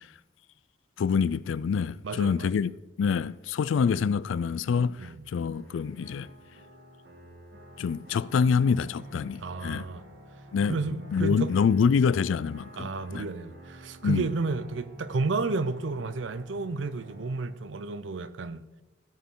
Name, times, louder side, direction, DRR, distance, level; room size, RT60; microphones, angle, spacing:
voice 1, 1.0-6.3 7.8-9.9 10.5-10.8 11.1-13.3 14.0-14.3, left 6 dB, 85° left, 0.3 m, -26 dB
voice 2, 2.0-2.5 5.0-5.3 9.4-10.0 10.7-11.5 12.8-18.6, right 3 dB, 80° right, 0.6 m, -31 dB
sound 1, 5.5-17.5, right 1 dB, 60° right, 1.8 m, -49 dB
16.5 x 6.0 x 3.7 m
head